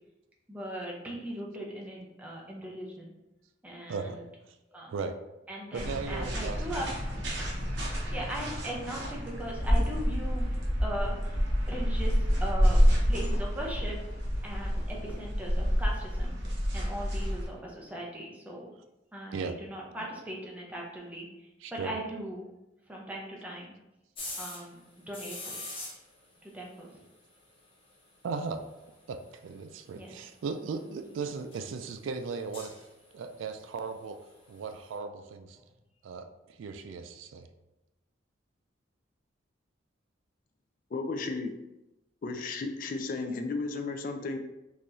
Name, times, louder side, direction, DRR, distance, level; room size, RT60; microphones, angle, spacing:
voice 1, 0.5-3.1 3.6-4.3 4.7-4.9 5.5-6.9 8.1-10.5 10.8-11.4 11.7-12.8 13.1-14.0 14.4-16.3 16.7-18.7 19.1-21.3 21.7-22.4 22.9-23.7 24.4-24.8 25.1-25.5 26.5-26.9 29.9-30.1, right 1 dB, 10° right, -3 dB, 0.6 m, -39 dB
voice 2, 3.9-4.2 4.9-5.1 5.7-6.7 19.3-19.5 20.0-20.1 21.6-21.9 28.2-28.6 29.1-32.7 33.1-34.2 34.5-35.6 36.0-37.5, right 4 dB, 85° right, 8 dB, 0.3 m, -37 dB
sound 1, 5.7-17.5, equal, 65° right, 1.0 m, -28 dB
sound 2, 24.1-24.7 25.1-26.4 26.8-26.9 27.1-27.2 27.4-27.5 29.3-29.4 30.1-30.2 30.9-31.1 31.5-31.7 32.2-33.1 34.8-34.9, left 2 dB, 30° left, 0.8 m, -41 dB
voice 3, 40.9-41.5 42.2-44.4, left 3 dB, 45° left, 5 dB, 0.3 m, -34 dB
3.8 x 2.9 x 2.6 m, 0.95 s
head